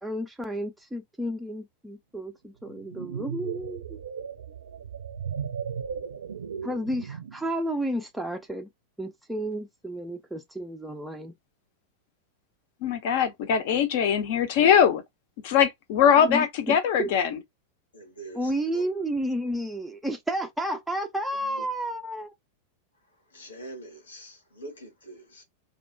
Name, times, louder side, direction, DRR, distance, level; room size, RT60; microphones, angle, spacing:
voice 1, 0.0-4.0 6.6-8.7 9.0-11.3 16.2-17.2 18.3-22.3, right 1 dB, 5° right, 0.4 m, -31 dB
sound 1, 2.7-7.5, right 7 dB, 65° right, 0.4 m, -36 dB
voice 2, 12.8-15.0 15.4-17.4, left 8 dB, 50° left, 0.6 m, -21 dB
voice 3, 17.9-18.9 21.4-21.7 23.3-25.4, right 1 dB, 75° left, 1.0 m, -44 dB
2.4 x 2.0 x 2.5 m
figure-of-eight pair, 90°, 0 cm